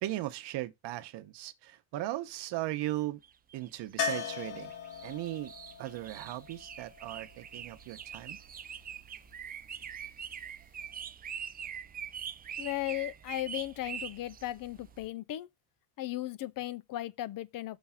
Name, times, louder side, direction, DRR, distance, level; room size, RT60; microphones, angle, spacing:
voice 1, 0.0-3.2 3.5-4.7 5.0-5.5 5.8-8.4, right 15 dB, 65° right, 1.0 m, -37 dB
sound 1, 3.2-15.1, right 8 dB, 20° right, 0.3 m, -44 dB
sound 2, 4.0-7.9 10.5-10.6 10.9-11.0, left 5 dB, 75° left, 2.0 m, -39 dB
voice 2, 12.6-15.5 16.0-17.8, left 15 dB, 50° left, 0.5 m, -36 dB
6.2 x 3.3 x 5.6 m
cardioid pair, 140°, 45 cm